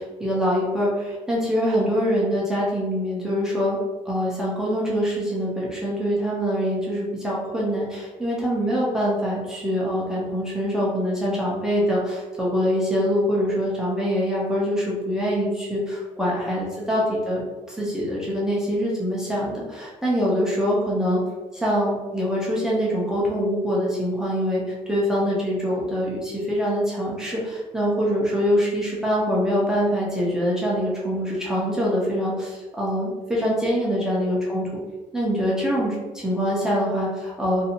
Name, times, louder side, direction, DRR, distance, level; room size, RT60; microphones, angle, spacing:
voice 1, 0.0-3.8 4.1-17.4 17.7-21.2 21.5-34.7 35.1-37.6, equal, 5° right, -6 dB, 0.5 m, -24 dB
2.5 x 2.3 x 2.8 m, 1.2 s
cardioid pair, 155°, 14 cm